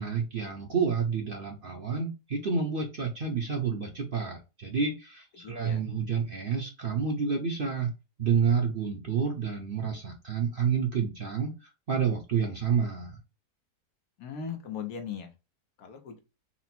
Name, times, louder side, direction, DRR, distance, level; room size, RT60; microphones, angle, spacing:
voice 1, 0.0-7.9 8.2-11.5 11.9-13.2, right 6 dB, 50° right, 1 dB, 0.7 m, -29 dB
voice 2, 5.4-5.9 14.2-15.3 15.8-16.2, left 7 dB, 80° left, 4 dB, 1.4 m, -39 dB
4.2 x 2.0 x 4.2 m, 0.28 s
omnidirectional pair, 1.6 m